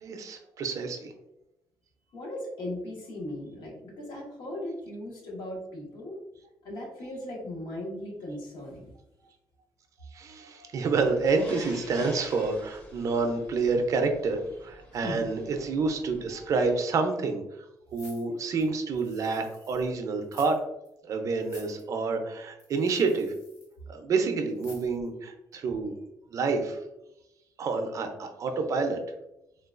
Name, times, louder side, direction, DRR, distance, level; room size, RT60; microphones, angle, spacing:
voice 1, 0.0-1.1 10.1-17.7 17.9-20.6 21.0-23.3 23.9-25.9 26.3-26.8 27.6-29.0, right 4 dB, 50° right, 5 dB, 0.4 m, -28 dB
voice 2, 2.1-6.2 6.6-8.9 15.0-15.3, left 1 dB, 75° left, -2 dB, 1.2 m, -38 dB
sound 1, 10.9-16.8, equal, 20° left, 0.6 m, -48 dB
sound 2, 17.9-19.9 20.2-20.6 20.8-20.9 21.4-21.8 22.6-23.7 24.6-25.1 25.5-25.6, left 2 dB, 45° left, 1.2 m, -53 dB
3.7 x 2.3 x 2.4 m, 0.89 s
cardioid pair, 150°, 7 cm